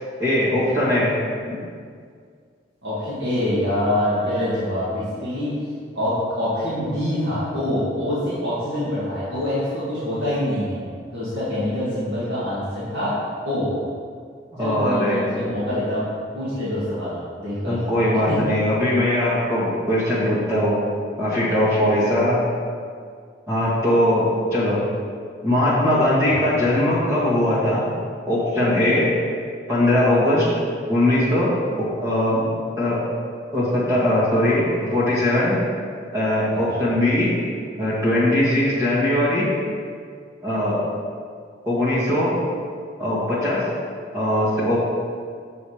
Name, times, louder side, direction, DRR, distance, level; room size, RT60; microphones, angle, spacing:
voice 1, 0.2-1.1 1.5-1.6 14.5-15.2 17.6-20.8 21.2-22.4 23.5-24.8 25.4-27.9 28.3-29.1 29.7-30.5 30.9-31.5 31.8-33.0 33.5-35.6 36.1-37.3 37.8-39.5 40.4-40.8 41.7-42.4 43.0-43.6 44.1-44.8, left 1 dB, 15° right, -9 dB, 2.0 m, -20 dB
voice 2, 2.8-5.5 5.9-10.8 11.1-13.1 13.5-13.7 14.6-16.1 16.3-17.8 18.3-18.4 26.2-26.5 36.5-36.8, left 1 dB, 70° right, -10 dB, 2.1 m, -25 dB
7.5 x 5.4 x 5.0 m, 2.1 s
head